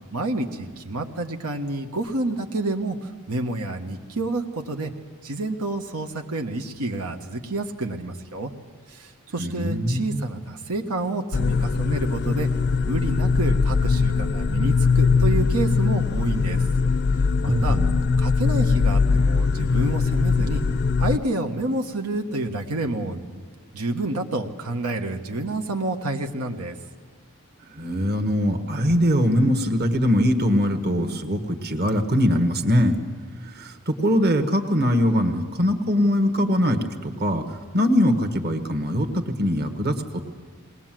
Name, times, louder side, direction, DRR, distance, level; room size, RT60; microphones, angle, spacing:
voice 1, 0.1-3.0 3.3-4.9 5.2-8.5 8.9-12.5 12.9-16.6 17.4-17.8 18.2-20.6 21.0-23.4 23.7-26.7, right 2 dB, 85° right, 4 dB, 1.4 m, -29 dB
voice 2, 9.4-10.2 17.4-18.0 27.7-32.9 33.5-37.4 37.7-40.2, equal, 45° right, 6 dB, 1.5 m, -22 dB
sound 1, 11.3-21.2, left 4 dB, 50° left, 0.5 m, -21 dB
21.0 x 19.5 x 7.6 m, 1.5 s
head